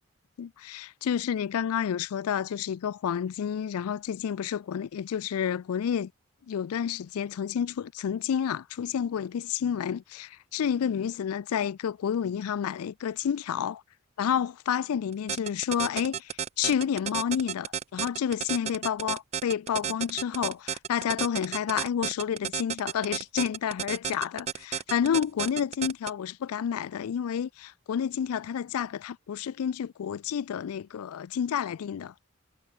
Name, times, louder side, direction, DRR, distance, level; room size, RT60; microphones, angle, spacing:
voice 1, 0.4-6.1 6.5-13.8 14.2-32.1, left 8 dB, 85° left, 0.4 m, -30 dB
sound 1, 15.1-26.1, right 8 dB, 30° right, 0.3 m, -32 dB
head